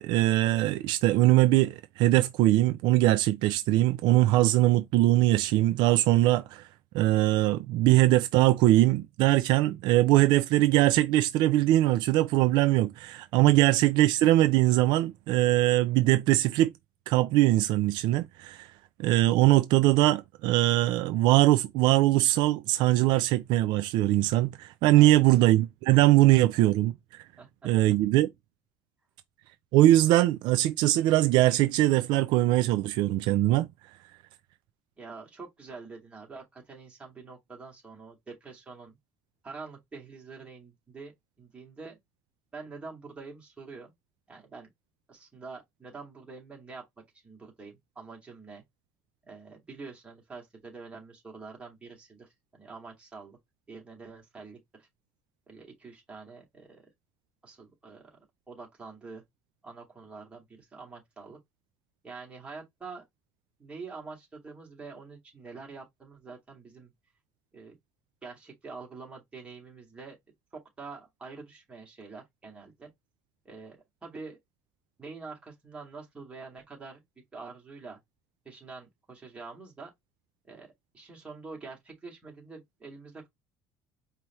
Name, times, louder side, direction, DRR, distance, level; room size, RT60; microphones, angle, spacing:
voice 1, 0.0-6.7 6.9-16.7 17.1-18.7 19.0-27.2 27.6-28.3 29.7-33.7, right 16 dB, 65° right, 0.4 m, -22 dB
voice 2, 27.4-27.7 35.0-39.0 39.4-41.1 41.4-42.0 42.5-43.9 44.3-44.7 45.1-46.8 47.2-48.6 49.2-53.4 53.7-54.9 55.5-56.9 57.4-58.2 58.5-59.2 59.6-61.4 62.0-63.0 63.6-66.9 67.5-67.8 68.2-70.2 70.8-72.9 73.4-74.4 75.0-77.0 77.3-78.0 78.4-79.9 80.4-83.3, right 4 dB, 15° right, 2.2 m, -46 dB
4.7 x 2.9 x 3.0 m
cardioid pair, 150°, 8 cm